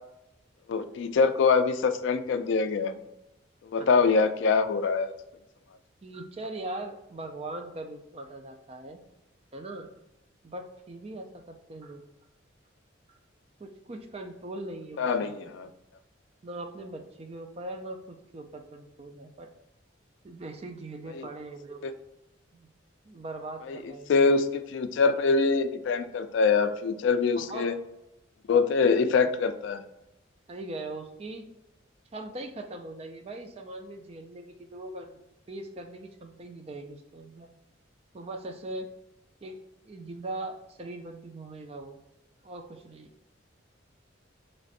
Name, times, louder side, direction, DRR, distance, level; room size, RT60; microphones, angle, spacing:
voice 1, 0.7-2.9 3.6-5.1 15.0-15.7 21.1-21.3 21.8-21.9 23.7-23.8 24.1-27.7 28.5-29.8, left 4 dB, 70° left, 11 dB, 0.3 m, -24 dB
voice 2, 6.0-9.0 9.5-9.9 10.4-12.0 13.1-13.2 13.6-15.3 16.4-19.5 20.2-21.8 22.5-22.7 23.0-24.3 27.4-27.7 29.2-29.3 30.5-31.5 32.1-35.2 35.5-37.5 38.1-38.9 39.4-39.6 39.8-42.0 42.4-43.1, right 2 dB, 30° right, 5 dB, 0.4 m, -40 dB
3.2 x 2.5 x 3.9 m, 0.89 s
head